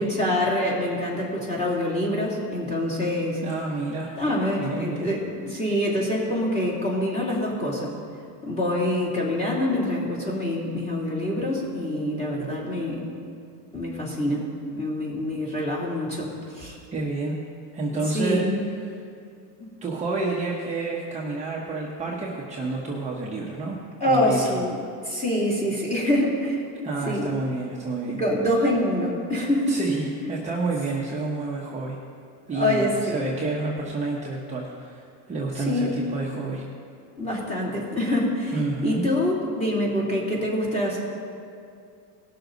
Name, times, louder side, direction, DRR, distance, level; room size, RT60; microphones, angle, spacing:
voice 1, 0.0-3.4 4.2-7.9 8.4-13.0 13.7-14.5 14.7-16.8 17.9-18.7 24.0-24.8 25.0-26.6 27.1-27.3 28.1-29.8 32.5-33.3 35.6-36.0 37.2-38.6 38.8-41.0, left 1 dB, 15° left, -5 dB, 2.9 m, -25 dB
voice 2, 3.4-4.1 4.6-5.1 16.9-17.4 17.7-18.5 18.8-18.9 19.8-23.8 24.0-24.6 26.8-28.2 29.7-32.0 32.5-36.6 38.5-39.1, right 3 dB, 15° right, -4 dB, 1.0 m, -29 dB
18.5 x 6.7 x 4.0 m, 2.4 s
supercardioid pair, 140°, 47 cm